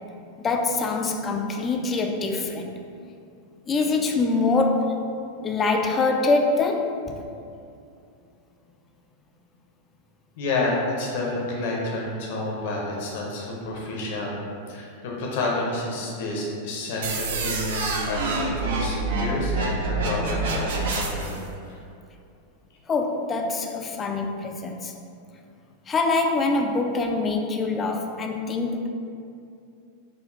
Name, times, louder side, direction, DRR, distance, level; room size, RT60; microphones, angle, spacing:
voice 1, 0.4-2.7 3.7-5.0 5.4-7.3 22.9-24.9 25.9-28.9, left 3 dB, 20° left, 3 dB, 0.3 m, -24 dB
voice 2, 10.4-14.4 14.7-21.4 21.7-21.8, left 2 dB, 50° left, -2 dB, 0.7 m, -29 dB
sound 1, 17.0-21.4, right 2 dB, 60° right, 0.4 m, -27 dB
5.0 x 2.4 x 2.4 m, 2.5 s
figure-of-eight pair, 90°, 0 cm